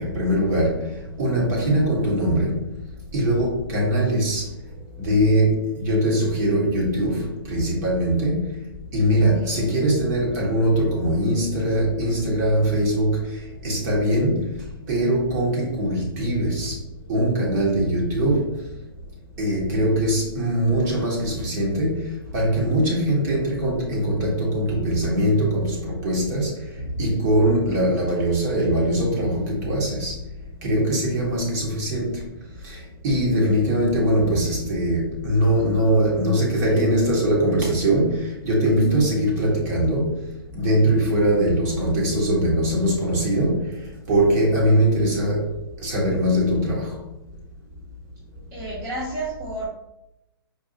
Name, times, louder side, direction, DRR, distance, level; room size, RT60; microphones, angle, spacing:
voice 1, 0.0-2.7 3.1-4.5 5.0-8.6 8.9-14.6 14.9-16.8 17.1-18.5 19.4-30.2 30.6-32.3 32.6-40.2 40.5-45.5 45.8-47.0, right 1 dB, 45° right, -3 dB, 1.5 m, -22 dB
voice 2, 9.2-9.7 48.5-49.7, right 2 dB, 25° right, -7 dB, 1.1 m, -31 dB
4.6 x 2.7 x 2.8 m, 0.86 s
hypercardioid pair, 140°, 13 cm